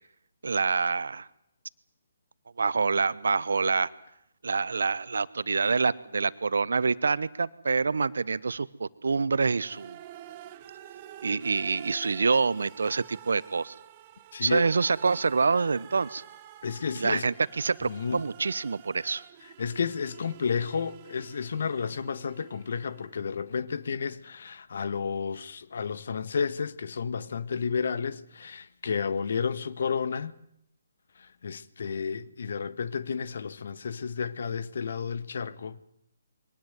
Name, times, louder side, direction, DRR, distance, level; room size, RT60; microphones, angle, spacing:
voice 1, 0.4-1.3 2.6-3.9 4.4-10.0 11.2-13.7 14.4-16.2 16.9-19.2, right 4 dB, 70° right, 1.0 m, -26 dB
sound 1, 9.6-23.4, right 12 dB, 30° right, 1.4 m, -49 dB
voice 2, 14.3-14.6 16.6-17.2 17.9-18.2 19.6-30.3 31.4-35.8, left 6 dB, 60° left, 1.4 m, -31 dB
23.0 x 18.0 x 9.4 m
figure-of-eight pair, 140°, 0 cm